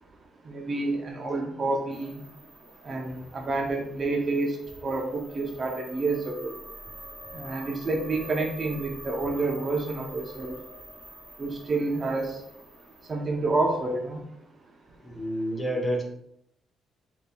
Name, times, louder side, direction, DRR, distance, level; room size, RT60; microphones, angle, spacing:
voice 1, 0.5-2.2 2.8-4.6 4.8-6.5 7.3-10.5 11.4-12.4 13.1-14.2, right 3 dB, 40° right, 2 dB, 0.6 m, -28 dB
sound 1, 1.9-13.1, right 1 dB, 5° right, 1.1 m, -47 dB
voice 2, 15.0-16.0, equal, 20° left, 0 dB, 1.1 m, -29 dB
5.0 x 2.7 x 2.3 m, 0.76 s
cardioid pair, 90°, 0 cm